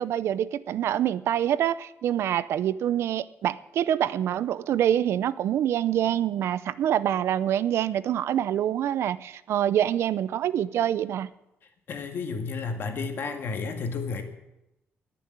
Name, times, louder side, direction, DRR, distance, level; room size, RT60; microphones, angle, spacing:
voice 1, 0.0-11.3, right 10 dB, 80° right, 17 dB, 0.6 m, -26 dB
voice 2, 11.9-14.2, left 4 dB, 55° left, 5 dB, 2.0 m, -31 dB
20.5 x 7.0 x 8.7 m, 0.90 s
wide cardioid pair, 170°, 4 cm